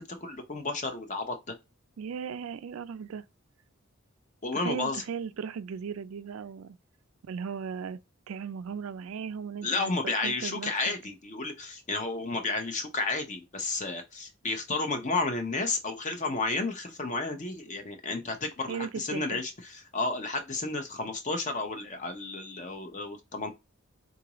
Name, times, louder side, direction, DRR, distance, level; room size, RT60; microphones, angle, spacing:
voice 1, 0.0-1.5 4.4-5.0 9.6-23.5, left 3 dB, 35° left, 0.7 m, -32 dB
voice 2, 2.0-3.2 4.5-6.8 7.2-8.0 8.3-10.7 18.7-19.4, right 6 dB, 85° right, 0.4 m, -37 dB
3.9 x 2.4 x 2.9 m
head